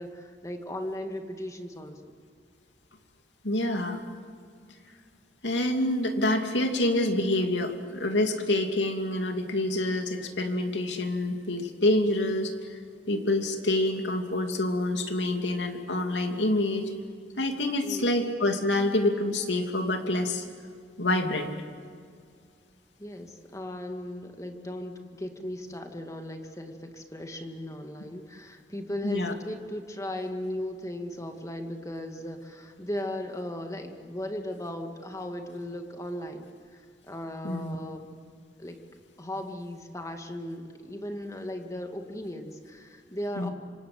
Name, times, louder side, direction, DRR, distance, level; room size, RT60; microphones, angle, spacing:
voice 1, 0.0-2.1 17.8-18.3 23.0-38.1 38.6-38.8 39.2-43.5, left 1 dB, 20° left, 5 dB, 2.2 m, -37 dB
voice 2, 3.4-4.0 5.4-12.5 13.1-16.9 17.4-20.4 21.0-21.5 29.0-29.3 37.4-37.8 43.4-43.5, left 1 dB, 80° left, 4 dB, 2.8 m, -27 dB
27.0 x 25.5 x 7.7 m, 2.1 s
head